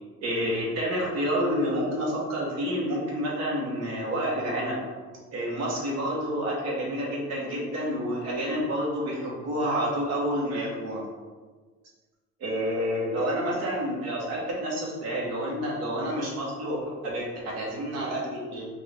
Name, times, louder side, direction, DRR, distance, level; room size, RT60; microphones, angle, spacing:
voice 1, 0.2-4.8 5.3-11.0 12.4-18.7, equal, 60° right, -4 dB, 1.1 m, -29 dB
4.1 x 2.5 x 3.4 m, 1.4 s
cardioid pair, 165°, 30 cm